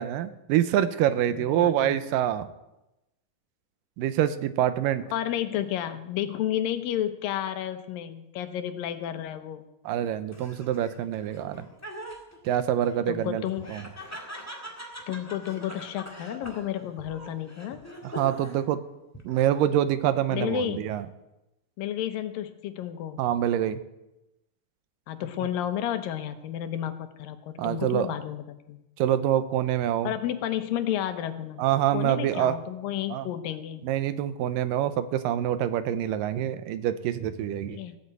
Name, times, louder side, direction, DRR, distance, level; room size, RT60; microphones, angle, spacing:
voice 1, 0.0-2.5 4.0-5.0 9.9-11.7 12.5-13.4 13.7-13.8 18.0-18.8 19.2-21.0 23.2-23.8 27.6-28.1 29.0-30.1 31.6-32.6 33.1-33.3 33.8-37.8, right 11 dB, 85° right, 12 dB, 2.4 m, -26 dB
voice 2, 1.3-2.0 5.1-9.6 13.1-13.7 15.1-17.8 20.3-20.8 21.8-23.2 25.1-28.8 30.0-31.6 31.9-33.8 37.7-38.0, left 11 dB, 85° left, 9 dB, 2.7 m, -31 dB
Laughter, 10.3-18.7 19.1-19.8, equal, 10° left, 0.8 m, -43 dB
15.5 x 8.5 x 8.2 m, 0.94 s
omnidirectional pair, 4.0 m